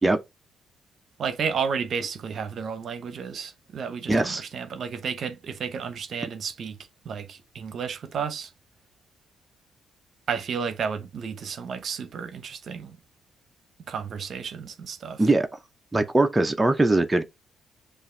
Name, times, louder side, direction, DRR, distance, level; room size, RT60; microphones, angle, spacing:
voice 1, 1.2-6.8 7.0-8.5 10.3-13.0 13.9-15.2, right 6 dB, 55° right, 0.7 m, -32 dB
voice 2, 4.1-4.4 15.2-15.5 15.9-17.2, right 2 dB, 15° right, 0.6 m, -21 dB
6.7 x 2.5 x 3.2 m
cardioid pair, 90°, 0 cm